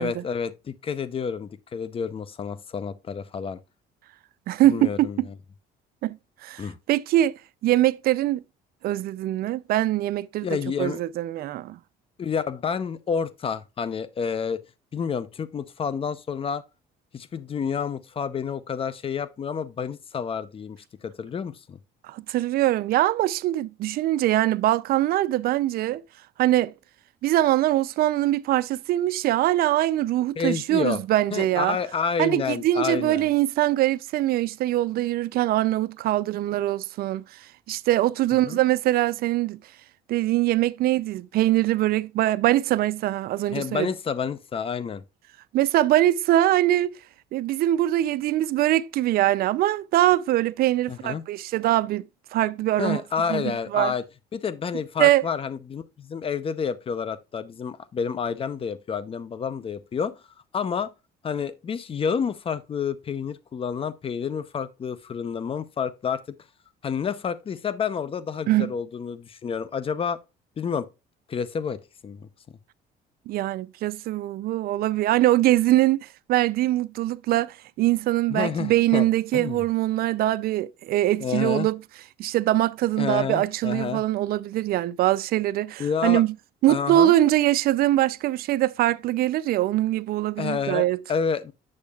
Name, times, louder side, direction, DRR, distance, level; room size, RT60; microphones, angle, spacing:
voice 1, 0.0-3.6 4.6-5.3 6.6-6.8 10.4-11.0 12.2-14.6 14.9-16.6 17.1-21.8 30.4-31.0 31.3-33.3 38.4-38.6 43.5-45.0 50.9-51.2 52.8-54.0 54.3-60.1 60.5-60.9 61.2-66.2 66.8-70.2 70.6-70.9 71.3-72.3 78.3-79.1 79.3-79.6 81.2-81.7 83.0-84.0 85.8-86.2 86.7-87.1 90.4-91.5, left 6 dB, 35° left, 0.6 m, -29 dB
voice 2, 4.5-5.3 6.0-6.2 6.4-6.6 6.9-7.3 7.6-8.4 8.8-10.5 10.8-11.8 22.1-26.0 26.4-26.7 27.2-31.8 32.2-37.2 37.7-39.6 40.1-43.9 45.5-47.0 47.3-52.0 52.3-53.0 53.3-53.4 53.7-53.9 55.0-55.2 68.5-68.7 73.3-81.8 82.2-86.3 86.6-91.0, right 14 dB, 65° right, 0.4 m, -23 dB
8.6 x 6.4 x 2.3 m
cardioid pair, 110°, 17 cm